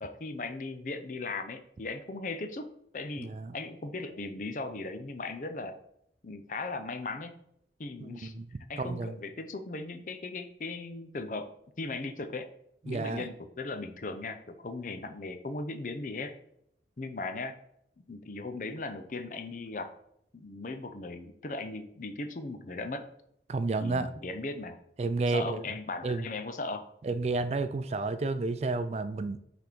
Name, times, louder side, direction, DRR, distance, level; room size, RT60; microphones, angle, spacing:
voice 1, 0.0-5.8 6.2-7.3 7.8-8.4 8.7-11.5 11.8-12.5 12.8-16.4 17.0-17.6 18.1-19.9 20.3-23.0 23.8-24.8 25.3-26.9, left 3 dB, 45° left, 8 dB, 0.5 m, -38 dB
voice 2, 3.2-3.6 8.0-8.5 8.8-9.2 12.9-13.3 23.5-24.1 25.0-25.7 26.0-26.3 27.0-29.4, right 3 dB, 35° right, 11 dB, 0.3 m, -31 dB
6.0 x 3.5 x 4.5 m, 0.72 s
head